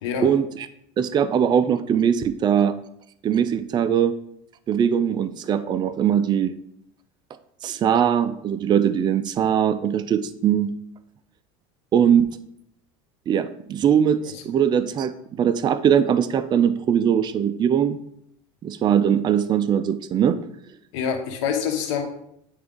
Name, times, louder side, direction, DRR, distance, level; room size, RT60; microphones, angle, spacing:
voice 1, 0.2-0.7 1.0-2.8 3.2-4.1 4.7-6.6 7.6-10.7 11.9-12.4 13.3-15.1 15.4-18.0 18.6-20.4, right 8 dB, 30° right, 12 dB, 0.4 m, -21 dB
voice 2, 20.9-22.0, left 7 dB, 80° left, 3 dB, 1.4 m, -26 dB
9.4 x 3.5 x 3.7 m, 0.74 s
supercardioid pair, 110°, 15 cm